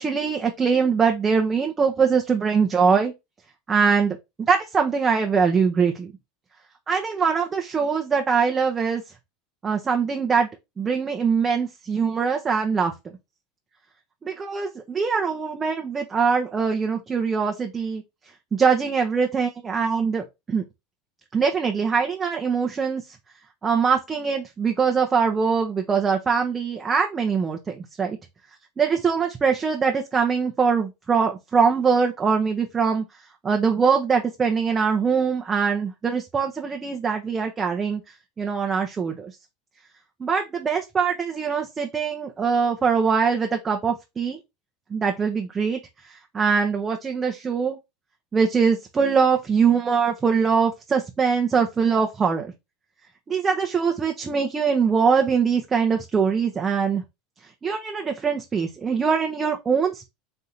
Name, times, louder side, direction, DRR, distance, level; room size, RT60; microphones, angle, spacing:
voice 1, 0.0-3.1 3.7-6.1 6.9-9.0 9.6-10.5 10.8-12.9 14.2-18.0 18.5-20.6 21.3-23.2 23.6-28.2 28.8-33.0 33.4-39.4 40.2-44.4 44.9-47.8 48.3-52.5 53.3-57.0 57.4-60.1, right 5 dB, 25° right, 0.7 m, -22 dB
4.4 x 2.7 x 3.9 m
supercardioid pair, 115°, 0 cm